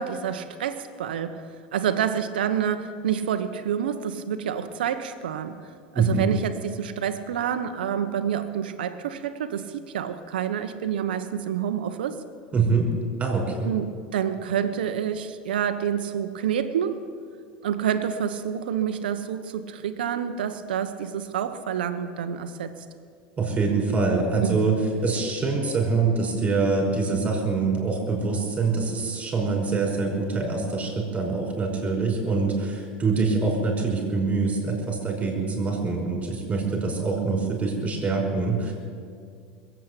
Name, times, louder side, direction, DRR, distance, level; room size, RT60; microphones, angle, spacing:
voice 1, 0.0-1.4 1.7-5.6 5.9-12.2 13.6-17.0 17.6-22.7 24.4-24.6, right 8 dB, 85° right, 9 dB, 1.1 m, -28 dB
voice 2, 5.9-6.3 12.5-12.9 13.2-13.7 23.4-24.8 25.0-38.7, right 4 dB, 25° right, -1 dB, 5.2 m, -25 dB
21.0 x 8.4 x 8.3 m, 2.2 s
hypercardioid pair, 100°, 5 cm